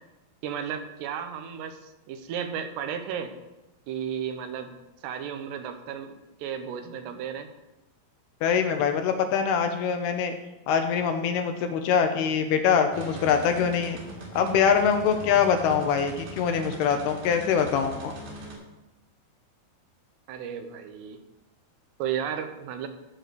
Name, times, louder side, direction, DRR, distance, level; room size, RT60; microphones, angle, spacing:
voice 1, 0.4-3.3 3.9-4.7 5.0-7.5 20.3-21.2 22.0-22.9, right 8 dB, 80° right, 7 dB, 3.0 m, -34 dB
voice 2, 8.4-10.3 10.7-14.0 14.3-18.1, left 7 dB, 80° left, 6 dB, 2.5 m, -24 dB
sound 1, 12.9-18.5, right 2 dB, 60° right, 3.7 m, -41 dB
13.5 x 4.5 x 6.7 m, 1.0 s
omnidirectional pair, 4.9 m